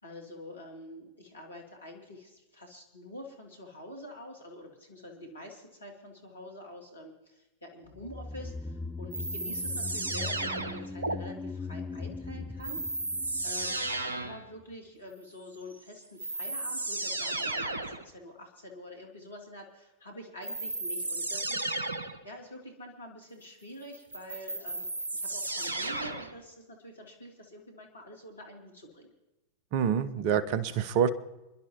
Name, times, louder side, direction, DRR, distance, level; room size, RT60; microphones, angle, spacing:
voice 1, 0.0-12.8 13.4-13.8 14.1-21.7 22.2-24.8 25.1-29.1, left 1 dB, 80° left, -1 dB, 2.6 m, -46 dB
sound 1, 7.9-14.3 14.6-14.7, left 3 dB, 5° left, 0.5 m, -40 dB
sound 2, 9.1-11.2 12.6-14.4 15.7-15.8 16.2-18.0 20.4-22.2 23.9-26.4, right 2 dB, 75° right, 0.9 m, -34 dB
voice 2, 29.7-31.1, right 8 dB, 45° right, 17 dB, 0.8 m, -26 dB
29.0 x 11.5 x 3.0 m, 1.0 s
figure-of-eight pair, 90°, 0 cm